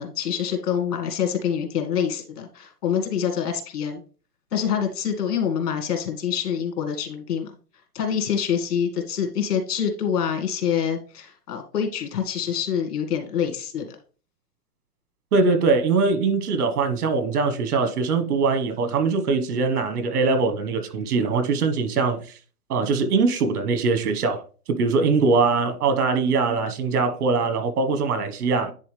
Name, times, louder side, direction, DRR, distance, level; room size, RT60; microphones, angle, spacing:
voice 1, 0.0-4.0 4.5-7.5 7.9-14.0, left 8 dB, 80° left, 2.0 m, -26 dB
voice 2, 15.3-22.2 22.7-24.4 24.8-28.7, right 4 dB, 70° right, 1.4 m, -22 dB
9.8 x 3.7 x 3.3 m
hypercardioid pair, 165°, 46 cm